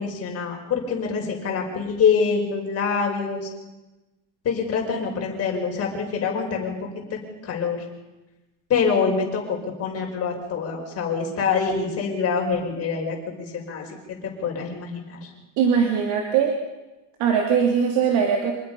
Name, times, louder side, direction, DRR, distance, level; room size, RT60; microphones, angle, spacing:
voice 1, 0.0-3.5 4.4-6.8 7.4-7.8 8.7-15.3, left 5 dB, 35° left, 1 dB, 5.5 m, -25 dB
voice 2, 15.6-16.6 17.2-18.5, right 7 dB, 65° right, 1 dB, 3.1 m, -20 dB
27.0 x 20.0 x 5.6 m, 1.1 s
cardioid pair, 155°, 43 cm